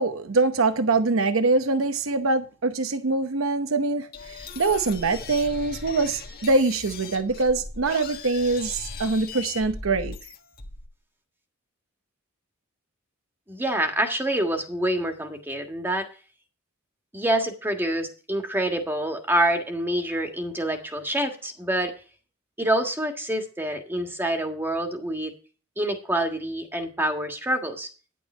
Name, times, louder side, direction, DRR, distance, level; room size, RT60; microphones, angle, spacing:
voice 1, 0.0-10.2, right 3 dB, 70° right, 0.8 m, -24 dB
sound 1, 4.1-10.9, left 4 dB, 50° left, 1.5 m, -39 dB
voice 2, 13.5-16.1 17.1-21.9 22.6-25.3 25.8-27.9, right 1 dB, 10° right, 1.6 m, -26 dB
10.5 x 8.5 x 4.4 m
head